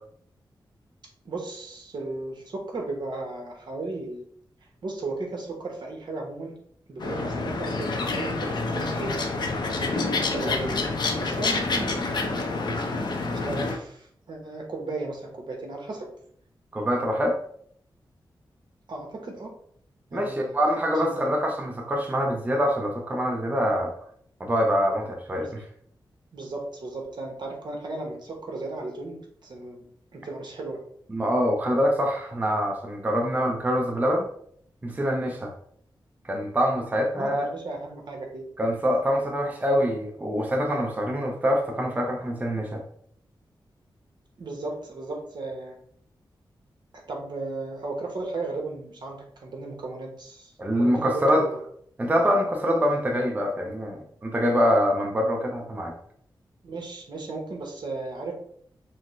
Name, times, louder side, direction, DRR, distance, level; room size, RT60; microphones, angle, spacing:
voice 1, 1.2-4.2 4.8-6.6 6.9-9.2 9.8-10.8 11.2-12.7 13.3-16.1 18.9-19.5 20.1-20.6 21.0-21.2 25.4-25.5 26.3-29.9 30.1-30.8 37.2-38.4 44.4-45.8 46.9-51.6 56.6-58.3, right 2 dB, 65° right, 1 dB, 1.1 m, -35 dB
sound 1, 7.0-13.8, left 3 dB, 65° left, 0.7 m, -28 dB
voice 2, 16.7-17.4 20.1-23.9 24.4-25.6 31.1-34.3 34.8-35.5 36.2-37.5 38.6-42.8 50.6-51.4 52.0-55.9, equal, 20° right, 1 dB, 0.6 m, -25 dB
6.1 x 2.1 x 3.1 m, 0.65 s
wide cardioid pair, 110°, 8 cm